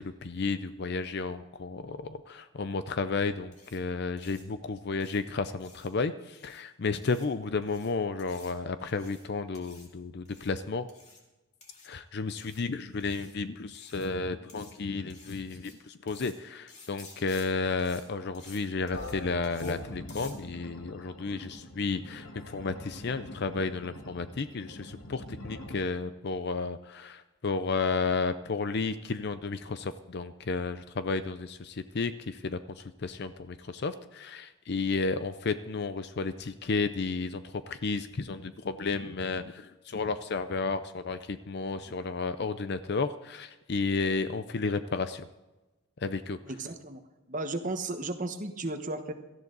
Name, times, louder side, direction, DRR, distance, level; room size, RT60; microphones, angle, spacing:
voice 1, 0.0-10.9 11.8-45.3 46.0-46.4, left 4 dB, 50° left, 12 dB, 0.5 m, -32 dB
sound 1, 3.5-3.8 4.2-4.4 5.0-5.2 5.6-5.9 6.3-6.6 7.0-7.3 7.6-7.9 8.2-8.5 8.9-9.2 9.5-9.9 10.2-10.5 10.9-11.2 11.6-11.9 12.4-12.6 13.0-13.3 13.7-14.1 14.5-14.7 15.1-15.7 16.1-16.3 16.7-17.5 17.8-18.0 18.3-18.6 18.9-19.1 19.4-19.8 20.1-20.3, left 4 dB, 30° left, 2.5 m, -53 dB
sound 2, 18.9-25.9, left 1 dB, 75° left, 1.7 m, -43 dB
voice 2, 46.4-47.0 47.3-49.1, right 2 dB, 35° right, 7 dB, 1.2 m, -34 dB
17.5 x 13.5 x 4.0 m, 1.1 s
head